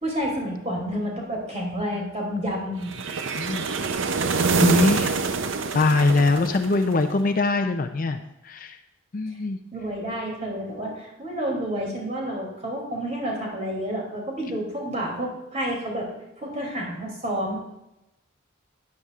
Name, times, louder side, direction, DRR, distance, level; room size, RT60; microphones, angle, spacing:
voice 1, 0.0-2.9 9.7-16.1 16.4-17.5, equal, 35° right, -2 dB, 2.8 m, -29 dB
sound 1, 2.9-7.1, right 4 dB, 65° right, 0.6 m, -25 dB
voice 2, 3.3-3.6 4.6-5.1 5.7-8.8 9.1-9.6, left 3 dB, 40° left, 7 dB, 0.5 m, -22 dB
12.0 x 9.6 x 2.4 m, 0.92 s
head